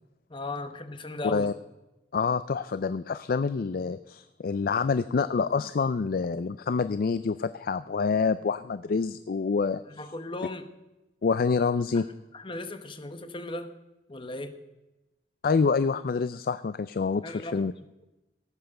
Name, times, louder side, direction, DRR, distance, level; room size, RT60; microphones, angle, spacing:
voice 1, 0.3-1.5 9.9-10.6 11.9-12.0 12.3-13.7 14.1-14.6 17.2-17.7, left 2 dB, 30° left, 9 dB, 1.1 m, -37 dB
voice 2, 2.1-9.8 11.2-12.1 15.4-17.7, left 5 dB, 55° left, 14 dB, 0.4 m, -27 dB
17.5 x 8.2 x 6.6 m, 0.99 s
head